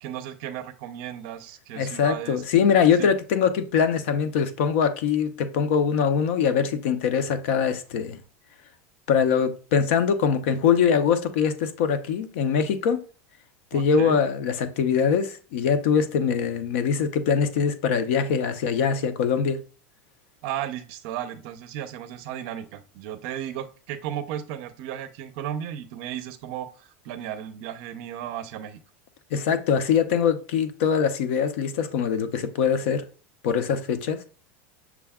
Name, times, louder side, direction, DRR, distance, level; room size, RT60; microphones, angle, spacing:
voice 1, 0.0-2.4 3.0-3.1 13.7-14.2 20.4-28.8, right 10 dB, 45° right, 0.5 m, -35 dB
voice 2, 1.7-8.2 9.1-13.0 13.7-19.6 29.3-33.0 33.4-34.2, left 7 dB, 60° left, 0.6 m, -23 dB
5.9 x 2.2 x 3.5 m
supercardioid pair, 170°, 7 cm